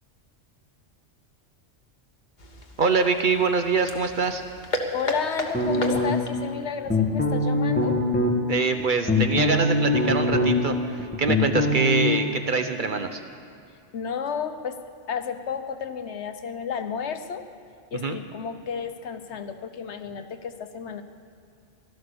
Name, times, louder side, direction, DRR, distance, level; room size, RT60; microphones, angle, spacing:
sound 1, 2.4-6.4, left 1 dB, 40° left, 1.4 m, -33 dB
voice 1, 2.8-4.4 8.5-13.2 18.0-18.2, right 4 dB, 50° right, 7 dB, 0.8 m, -24 dB
voice 2, 4.9-8.0 13.9-14.8 15.1-17.5 17.9-21.0, left 6 dB, 70° left, 9 dB, 1.1 m, -32 dB
sound 2, 5.5-6.4 6.9-8.3 8.8-10.7 11.0-12.1, left 2 dB, 10° left, 1.5 m, -22 dB
16.0 x 12.5 x 6.8 m, 2.3 s
omnidirectional pair, 1.2 m